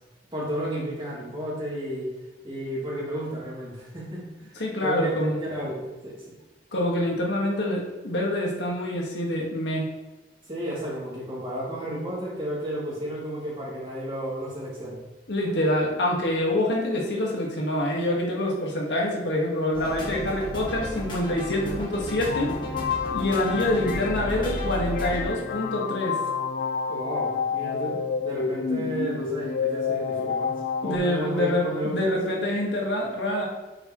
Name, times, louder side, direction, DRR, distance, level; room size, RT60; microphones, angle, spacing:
voice 1, 0.3-2.1 2.4-4.3 4.8-6.4 10.5-15.0 26.9-30.5 30.8-32.3, equal, 30° right, -6 dB, 2.6 m, -32 dB
voice 2, 4.6-5.4 6.7-9.9 15.3-22.5 23.1-26.2 30.8-33.5, left 1 dB, 70° left, -2 dB, 1.6 m, -26 dB
sound 1, 19.7-25.2, equal, 25° left, 1.7 m, -33 dB
sound 2, 22.2-31.0, left 6 dB, 50° left, 0.4 m, -29 dB
8.1 x 6.9 x 3.1 m, 1.1 s
head